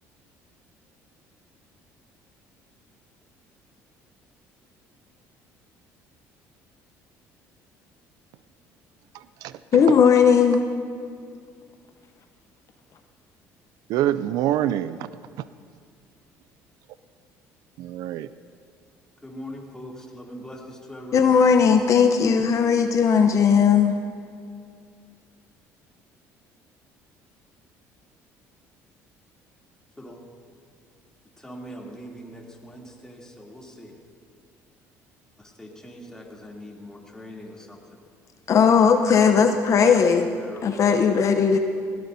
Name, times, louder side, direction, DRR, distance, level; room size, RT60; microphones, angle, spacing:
voice 1, 9.1-9.6 9.9-10.0 13.9-15.1 15.4-15.5 17.8-18.3, right 12 dB, 70° right, 15 dB, 0.4 m, -26 dB
voice 2, 9.7-10.7 21.1-23.9 38.5-40.3 40.6-41.6, left 6 dB, 50° left, 6 dB, 0.8 m, -17 dB
voice 3, 19.2-21.5 30.0-30.2 31.4-34.0 35.4-38.0 39.4-39.7 40.1-40.8 41.5-41.6, equal, 10° left, -2 dB, 3.0 m, -42 dB
19.5 x 17.0 x 2.7 m, 2.3 s
supercardioid pair, 75°, 7 cm